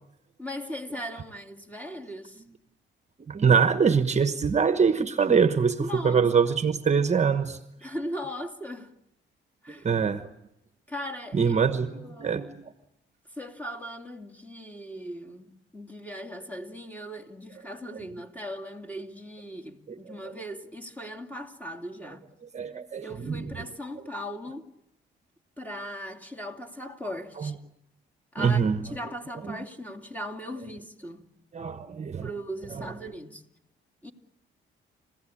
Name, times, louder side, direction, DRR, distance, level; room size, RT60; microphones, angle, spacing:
voice 1, 0.4-2.4 5.8-6.2 7.8-8.9 9.6-9.9 10.9-11.5 11.9-12.5 13.4-22.2 23.0-24.7 25.6-27.5 28.3-28.6 28.9-31.3 32.2-33.4 34.0-34.1, equal, 10° left, 2.6 m, -38 dB
voice 2, 3.3-7.6 9.8-10.3 11.3-12.7 17.9-18.1 19.9-20.4 22.5-23.5 27.4-27.5 28.4-29.0 29.4-29.6 31.5-32.3 32.7-32.9, right 6 dB, 35° right, 1.2 m, -24 dB
29.5 x 16.0 x 8.7 m
cardioid pair, 90°, 20 cm